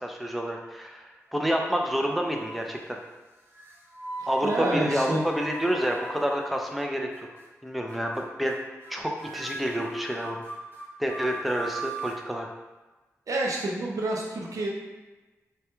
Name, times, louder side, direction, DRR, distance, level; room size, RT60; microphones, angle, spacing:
voice 1, 0.0-3.0 4.3-7.1 7.6-8.5 8.9-10.4 11.0-12.5, equal, ahead, 1 dB, 0.4 m, -28 dB
sound 1, 1.3-1.9 2.3-2.8 3.5-6.8 7.1-7.5 7.9-8.2 8.5-8.9 9.2-12.2, right 2 dB, 40° right, 1.0 m, -40 dB
voice 2, 4.2-5.3 13.3-14.7, right 1 dB, 70° right, -1 dB, 0.5 m, -28 dB
2.2 x 2.1 x 2.9 m, 1.2 s
cardioid pair, 50°, 6 cm